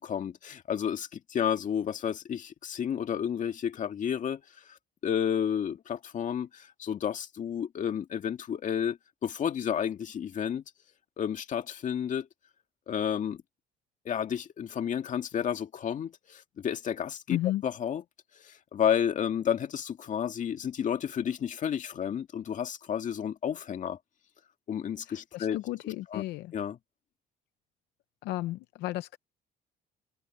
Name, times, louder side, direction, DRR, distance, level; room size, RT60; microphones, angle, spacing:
voice 1, 0.0-4.8 5.0-10.6 11.2-12.3 12.9-13.4 14.1-17.4 17.6-18.0 18.4-24.0 24.7-25.6 26.1-26.2 26.5-26.8, left 8 dB, 50° left, 2.0 m, -31 dB
voice 2, 17.3-17.6 25.1-26.5 28.2-29.2, left 16 dB, 85° left, 0.7 m, -33 dB
cardioid pair, 110°, 17 cm